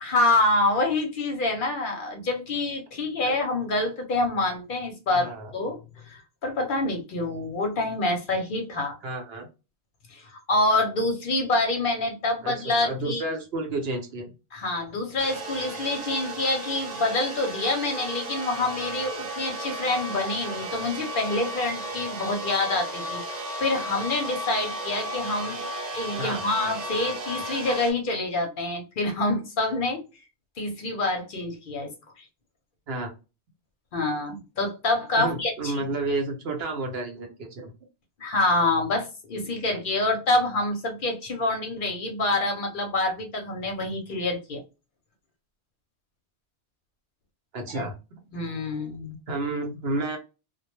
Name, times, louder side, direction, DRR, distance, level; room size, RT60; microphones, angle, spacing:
voice 1, 0.0-5.8 6.1-9.0 10.1-13.2 14.5-25.6 25.9-30.0 30.6-31.9 32.2-32.3 33.9-35.7 38.2-44.6 47.7-47.8 48.3-49.2, left 2 dB, 55° left, 0.7 m, -26 dB
voice 2, 5.1-5.5 9.0-9.5 12.4-14.3 26.2-26.4 32.9-33.1 35.2-37.7 47.5-47.9 49.3-50.2, right 2 dB, 65° right, 0.9 m, -31 dB
sound 1, 15.2-27.9, right 1 dB, 45° right, 0.7 m, -34 dB
2.2 x 2.1 x 2.9 m
omnidirectional pair, 1.1 m